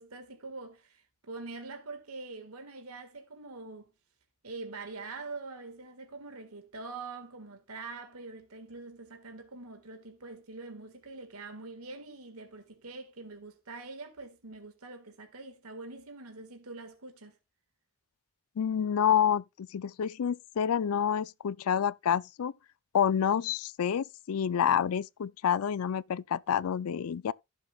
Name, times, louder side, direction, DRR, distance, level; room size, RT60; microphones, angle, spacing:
voice 1, 0.0-3.9 4.4-17.4, right 3 dB, 85° right, 1.7 m, -44 dB
voice 2, 18.6-22.5 22.9-27.3, left 8 dB, 80° left, 0.4 m, -28 dB
15.5 x 7.1 x 2.3 m
head